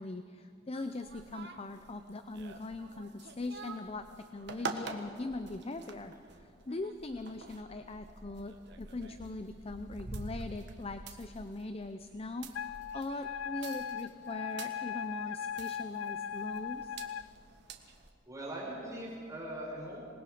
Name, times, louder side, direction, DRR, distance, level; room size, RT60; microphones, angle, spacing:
voice 1, 0.0-4.1 4.3-16.9, left 2 dB, 30° left, 9 dB, 0.6 m, -41 dB
sound 1, 0.7-18.1, right 3 dB, 60° right, 1.6 m, -47 dB
Wind instrument woodwind instrument, 12.5-17.3, left 8 dB, 75° left, 0.4 m, -39 dB
voice 2, 18.3-20.0, right 1 dB, 15° right, -5 dB, 5.0 m, -41 dB
26.5 x 20.0 x 5.1 m, 2.5 s
head